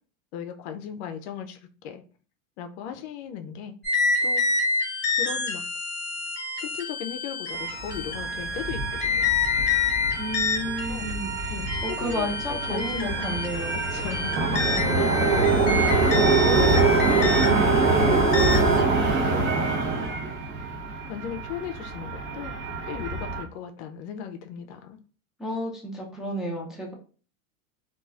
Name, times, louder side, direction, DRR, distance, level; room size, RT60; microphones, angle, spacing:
voice 1, 0.3-1.6 1.8-2.0 2.6-3.7 4.2-4.4 5.2-5.6 6.6-9.3 10.8-11.1 11.5-13.5 13.7-14.5 14.9-15.4 15.8-17.2 17.6-18.7 19.2-20.1 21.1-22.5 22.9-25.0, left 8 dB, 55° left, 6 dB, 0.5 m, -37 dB
sound 1, 3.8-18.8, left 3 dB, 25° left, 1.1 m, -28 dB
sound 2, 7.6-23.4, right 3 dB, 30° right, 0.8 m, -25 dB
voice 2, 10.2-11.3 11.8-13.8 14.7-15.2 25.4-26.9, equal, ahead, -3 dB, 0.4 m, -32 dB
2.9 x 2.4 x 2.4 m, 0.39 s
hypercardioid pair, 110°, 40 cm